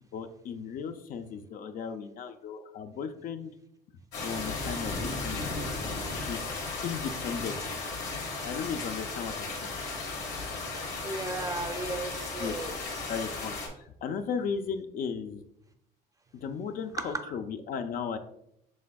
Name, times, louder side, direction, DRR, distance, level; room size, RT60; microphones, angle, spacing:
voice 1, 0.1-3.5 4.2-5.5 6.1-6.5 6.8-7.8 8.4-9.7 12.4-12.6 13.1-15.4 16.3-18.2, left 6 dB, 55° left, 0.5 m, -36 dB
sound 1, 4.1-13.7, left 3 dB, 85° left, 1.7 m, -35 dB
voice 2, 11.0-12.7 17.0-17.4, right 3 dB, 20° right, 0.5 m, -35 dB
6.3 x 3.5 x 2.3 m
cardioid pair, 110°, 17 cm